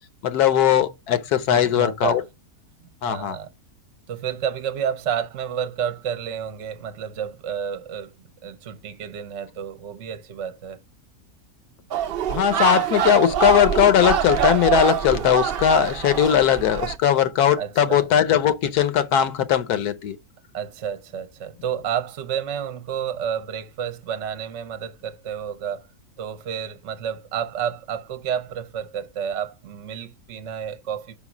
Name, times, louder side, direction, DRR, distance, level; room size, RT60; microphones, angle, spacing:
voice 1, 0.2-2.2 3.0-3.4 12.3-20.2, left 9 dB, 85° left, 1.3 m, -19 dB
voice 2, 1.5-2.2 2.8-3.5 4.1-8.1 8.4-10.8 17.6-18.1 20.5-25.9 26.2-31.2, right 8 dB, 60° right, 0.9 m, -30 dB
sound 1, 11.9-17.0, right 9 dB, 80° right, 0.5 m, -24 dB
6.0 x 4.1 x 5.9 m
omnidirectional pair, 1.6 m